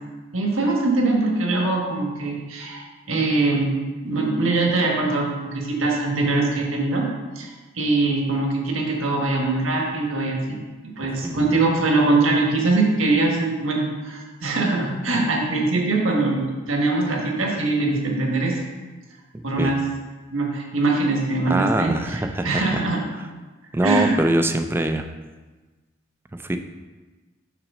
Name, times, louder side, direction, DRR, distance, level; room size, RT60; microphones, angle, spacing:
voice 1, 0.3-3.7 4.0-7.0 7.3-18.5 19.4-19.8 20.3-23.0 23.8-24.1, right 2 dB, 85° right, 0 dB, 1.4 m, -22 dB
voice 2, 11.2-11.5 19.3-19.7 21.5-22.6 23.2-23.3 23.7-25.1 26.3-26.6, right 1 dB, 10° right, 7 dB, 0.3 m, -24 dB
5.9 x 4.1 x 6.0 m, 1.3 s
head